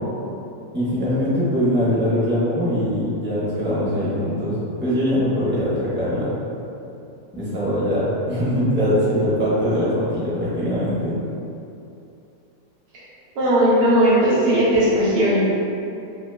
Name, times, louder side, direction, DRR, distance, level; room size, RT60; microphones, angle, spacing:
voice 1, 0.7-6.3 7.3-11.2, equal, 15° right, -10 dB, 0.5 m, -22 dB
voice 2, 13.4-15.4, equal, 60° right, -9 dB, 0.7 m, -17 dB
3.7 x 2.9 x 2.2 m, 2.7 s
omnidirectional pair, 1.7 m